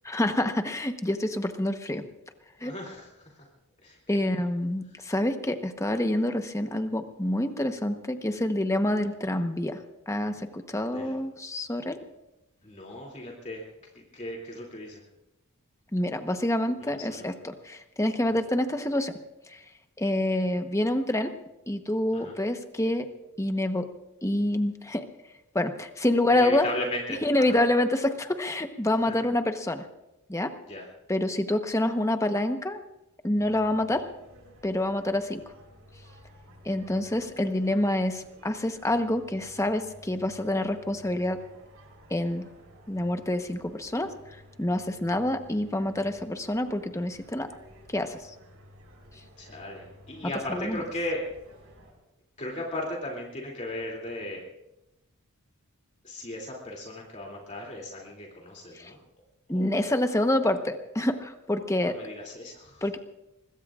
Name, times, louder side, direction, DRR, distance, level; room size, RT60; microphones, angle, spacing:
voice 1, 0.0-2.0 2.6-2.7 4.1-9.8 10.1-12.0 15.9-19.2 19.5-19.6 20.0-21.3 21.7-23.1 23.4-23.9 24.2-25.1 25.5-26.7 27.2-29.9 30.3-30.5 31.1-32.8 33.2-34.1 34.6-35.4 36.6-41.4 42.1-42.5 42.9-47.5 47.9-48.3 50.5-50.8 58.7-58.9 59.5-62.0 62.8-63.0, left 1 dB, 15° left, 7 dB, 1.0 m, -27 dB
voice 2, 2.6-3.5 3.8-4.0 10.9-11.2 12.6-13.7 13.9-15.0 16.8-17.3 18.2-18.3 22.1-22.3 26.3-27.6 28.9-29.3 30.7-30.9 49.4-51.2 52.4-54.4 56.0-59.0 59.5-59.9 61.8-62.9, left 1 dB, 30° left, -2 dB, 2.7 m, -37 dB
sound 1, 33.3-51.9, equal, 65° right, 6.3 m, -53 dB
24.0 x 21.5 x 2.5 m, 0.93 s
head